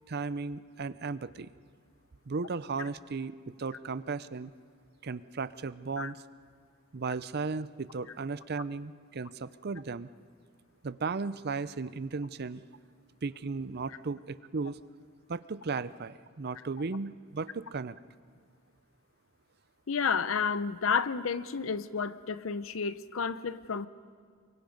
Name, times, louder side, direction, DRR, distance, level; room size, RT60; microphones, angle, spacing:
voice 1, 0.1-1.5 2.3-4.5 5.0-6.2 6.9-10.1 10.8-12.6 13.2-14.8 15.3-18.0, right 4 dB, 50° right, 15 dB, 0.6 m, -35 dB
voice 2, 19.9-23.9, left 6 dB, 75° left, 15 dB, 0.7 m, -31 dB
29.0 x 23.0 x 5.3 m, 2.1 s
head